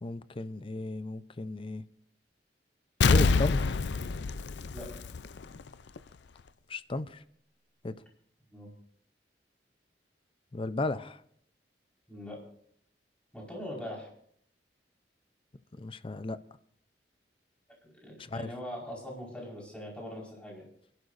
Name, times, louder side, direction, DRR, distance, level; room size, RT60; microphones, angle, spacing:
voice 1, 0.0-1.8 3.1-3.8 6.7-7.2 7.8-7.9 10.5-11.2 15.8-16.4 18.3-18.5, left 2 dB, 30° left, 14 dB, 0.6 m, -35 dB
Explosion, 3.0-5.6 6.0-6.1, left 4 dB, 75° left, 0.5 m, -26 dB
voice 2, 12.1-12.4 13.3-14.1 18.0-20.6, left 1 dB, 5° left, -3 dB, 4.7 m, -41 dB
28.5 x 12.0 x 2.6 m, 0.64 s
head